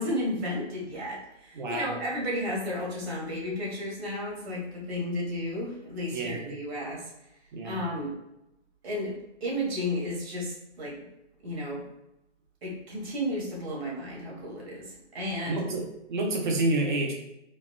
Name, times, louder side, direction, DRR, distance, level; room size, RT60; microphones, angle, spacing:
voice 1, 0.0-7.0 7.6-8.1 8.8-11.0 11.4-11.8 12.6-15.6, left 1 dB, 60° right, -4 dB, 1.4 m, -33 dB
voice 2, 1.5-1.9 6.1-6.5 7.5-7.9 15.5-17.1, right 2 dB, 40° right, 1 dB, 0.6 m, -29 dB
4.0 x 2.3 x 2.3 m, 0.87 s
hypercardioid pair, 150°, 36 cm